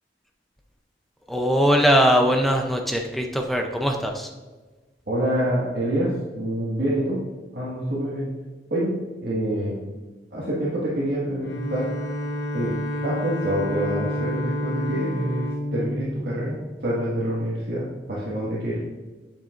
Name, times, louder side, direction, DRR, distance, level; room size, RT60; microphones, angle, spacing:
voice 1, 1.3-4.3, equal, ahead, 3 dB, 0.6 m, -21 dB
voice 2, 5.1-7.3 7.5-8.3 8.7-9.8 10.3-11.9 12.5-18.8, right 1 dB, 60° right, -8 dB, 1.8 m, -27 dB
Bowed string instrument, 11.4-17.0, left 1 dB, 80° left, 1.0 m, -29 dB
8.8 x 7.3 x 2.5 m, 1.3 s
head